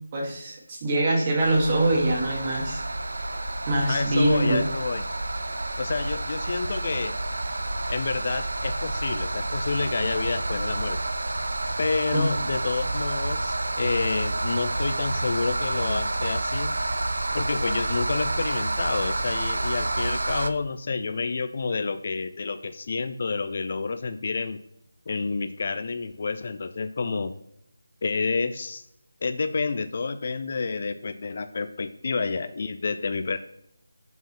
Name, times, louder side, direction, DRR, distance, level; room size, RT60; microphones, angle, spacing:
voice 1, 0.1-2.8 3.7-4.6 12.1-12.3, right 1 dB, 25° right, -1 dB, 1.7 m, -24 dB
sound 1, 1.4-20.5, right 2 dB, 80° right, 0.6 m, -29 dB
voice 2, 3.9-5.0 5.8-7.2 7.9-11.0 11.8-16.7 17.3-24.6 25.1-27.3 28.0-28.8 29.2-33.4, left 4 dB, 40° left, 10 dB, 0.4 m, -29 dB
5.8 x 4.7 x 5.4 m, 0.77 s
figure-of-eight pair, 170°, 0 cm